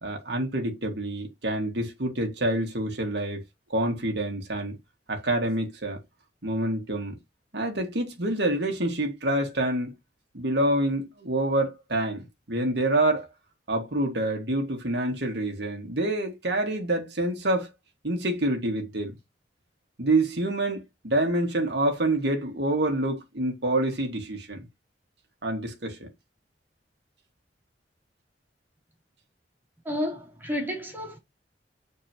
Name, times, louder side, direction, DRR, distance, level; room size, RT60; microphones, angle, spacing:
voice 1, 0.0-3.4 3.7-4.8 5.1-6.0 6.4-7.2 7.5-9.9 10.3-13.3 13.7-17.7 18.0-19.2 20.0-24.7 25.4-26.1, right 1 dB, 70° right, 1.8 m, -27 dB
voice 2, 29.8-31.2, left 1 dB, 10° right, 2.9 m, -31 dB
7.3 x 4.6 x 2.9 m
head